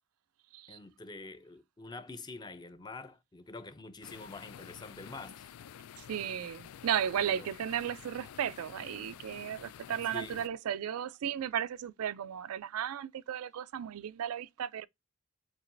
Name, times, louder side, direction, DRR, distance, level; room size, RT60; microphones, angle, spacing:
voice 1, 0.7-5.5 7.1-7.5 9.6-9.8 10.1-10.5, left 3 dB, 20° left, 0.4 m, -46 dB
sound 1, 4.0-10.5, left 9 dB, 85° left, 0.3 m, -50 dB
voice 2, 6.0-14.9, right 9 dB, 85° right, 0.4 m, -35 dB
7.2 x 2.9 x 2.5 m
head